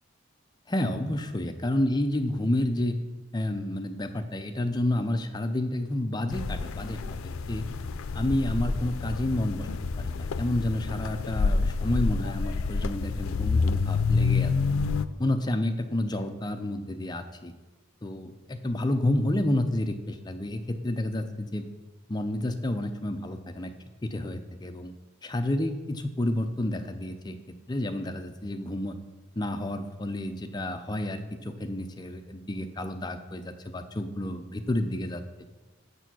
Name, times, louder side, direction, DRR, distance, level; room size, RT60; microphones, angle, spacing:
voice 1, 0.7-3.0 3.3-7.7 8.1-9.7 10.0-14.5 15.2-17.5 18.0-21.6 22.1-23.7 24.0-24.9 25.2-27.4 27.7-29.0 29.4-35.2, left 1 dB, 20° left, 7 dB, 0.5 m, -30 dB
sound 1, 6.3-15.0, left 4 dB, 90° left, 0.4 m, -28 dB
7.0 x 6.9 x 6.0 m, 1.2 s
head